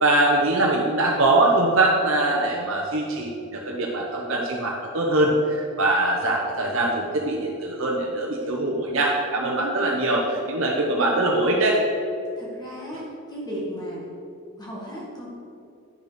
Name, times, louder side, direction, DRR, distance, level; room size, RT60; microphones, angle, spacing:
voice 1, 0.0-11.8, right 2 dB, 65° right, -2 dB, 1.0 m, -22 dB
voice 2, 12.4-14.0 14.6-15.3, equal, 20° left, -5 dB, 2.0 m, -35 dB
10.5 x 6.7 x 5.1 m, 2.6 s
head